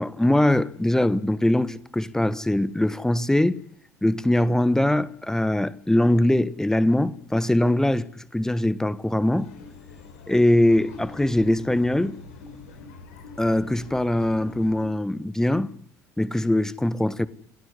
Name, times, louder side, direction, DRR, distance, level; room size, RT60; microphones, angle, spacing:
voice 1, 0.0-3.6 4.0-9.5 10.3-12.1 13.4-15.7 16.2-17.3, left 1 dB, 5° left, 1.5 m, -22 dB
sound 1, 9.4-14.9, left 4 dB, 70° left, 5.3 m, -44 dB
27.0 x 17.5 x 9.9 m
figure-of-eight pair, 60°, 8 cm